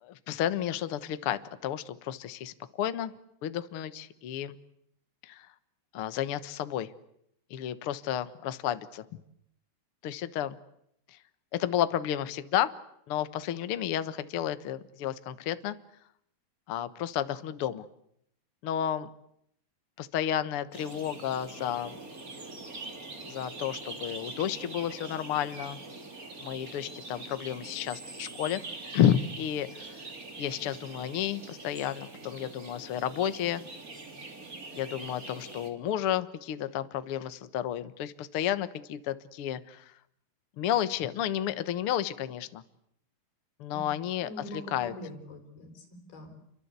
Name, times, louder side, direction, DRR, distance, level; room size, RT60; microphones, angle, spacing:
voice 1, 0.0-3.1 3.4-4.6 5.2-5.5 5.9-6.9 7.5-9.0 10.0-10.6 11.1-11.2 11.5-12.7 13.1-15.8 16.7-17.9 18.6-19.1 20.0-22.0 23.2-25.8 26.4-28.6 28.9-30.0 30.4-33.6 34.7-39.9 40.6-42.6 43.6-44.9, left 10 dB, 65° left, 12 dB, 1.4 m, -31 dB
sound 1, 20.7-35.7, right 3 dB, 25° right, 3.0 m, -44 dB
voice 2, 44.2-46.4, left 1 dB, 85° left, 6 dB, 6.9 m, -44 dB
29.0 x 24.0 x 8.3 m, 0.74 s
omnidirectional pair, 4.2 m